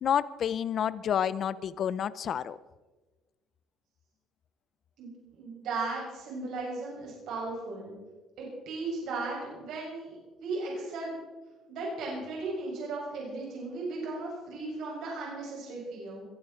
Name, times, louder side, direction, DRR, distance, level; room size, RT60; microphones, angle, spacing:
voice 1, 0.0-2.6, left 9 dB, 45° left, 17 dB, 0.6 m, -29 dB
voice 2, 5.0-8.0 8.4-11.2 11.7-16.3, right 3 dB, 65° right, -3 dB, 7.2 m, -36 dB
22.0 x 12.5 x 4.5 m, 1.2 s
cardioid pair, 140°, 0 cm